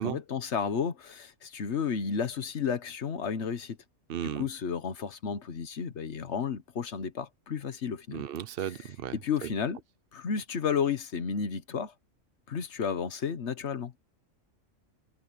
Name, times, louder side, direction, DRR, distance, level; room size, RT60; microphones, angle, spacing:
voice 1, 0.0-3.8 4.2-8.2 8.6-9.8 10.1-11.9 12.5-13.9, left 6 dB, 65° left, 1.4 m, -32 dB
voice 2, 4.1-4.5 8.1-9.5, right 10 dB, 55° right, 0.8 m, -35 dB
omnidirectional pair, 1.3 m